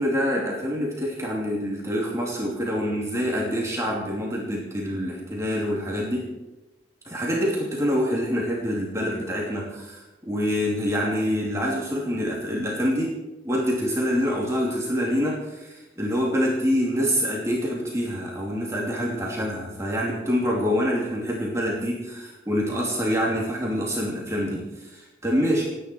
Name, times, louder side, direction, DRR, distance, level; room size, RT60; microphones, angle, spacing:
voice 1, 0.0-6.3 7.0-13.1 13.4-25.6, equal, 15° right, -3 dB, 2.8 m, -26 dB
28.0 x 10.0 x 4.6 m, 1.0 s
head